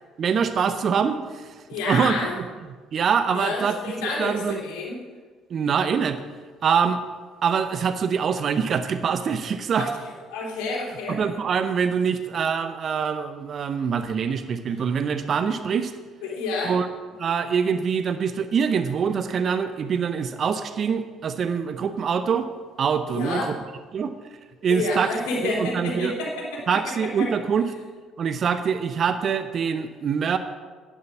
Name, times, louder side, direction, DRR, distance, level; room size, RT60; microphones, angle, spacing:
voice 1, 0.2-1.5 1.9-2.4 2.9-3.8 4.2-4.6 5.5-6.2 6.6-7.0 7.4-9.9 11.1-15.9 16.6-16.9 17.2-22.5 22.8-23.5 23.9-24.1 24.6-25.1 25.4-26.1 26.7-27.6 28.2-30.4, right 6 dB, 45° right, 11 dB, 0.7 m, -24 dB
voice 2, 1.7-2.3 3.3-5.0 9.8-11.2 16.2-16.7 23.1-23.5 24.7-26.6 27.2-27.3, left 3 dB, 65° left, -2 dB, 3.1 m, -29 dB
10.5 x 10.0 x 6.0 m, 1.5 s
figure-of-eight pair, 50°, 0 cm